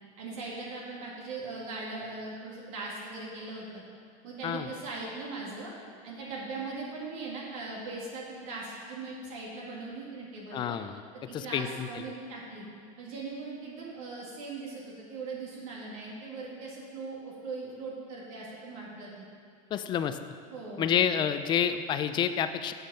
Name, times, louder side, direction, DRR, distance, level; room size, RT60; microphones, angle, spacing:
voice 1, 0.2-3.8 4.2-5.7 6.0-10.8 11.3-12.7 13.0-19.2 20.5-20.9, right 3 dB, 70° right, -4 dB, 2.0 m, -40 dB
voice 2, 10.5-11.0 11.3-12.0 19.7-20.2 20.8-22.7, left 8 dB, 25° left, 10 dB, 0.3 m, -29 dB
7.2 x 7.2 x 5.6 m, 2.2 s
supercardioid pair, 145°, 18 cm